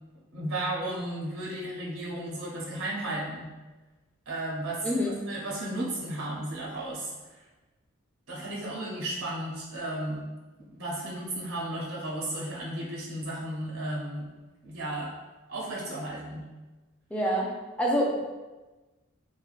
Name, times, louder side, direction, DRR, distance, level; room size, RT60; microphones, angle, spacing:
voice 1, 0.3-3.5 4.3-4.9 5.3-7.1 8.3-10.2 10.7-14.3 14.6-15.1 15.5-16.5, right 1 dB, 80° right, -5 dB, 0.7 m, -34 dB
voice 2, 4.8-5.2 17.1-17.5 17.8-18.2, equal, 5° left, -3 dB, 0.3 m, -26 dB
3.3 x 2.2 x 2.4 m, 1.2 s
head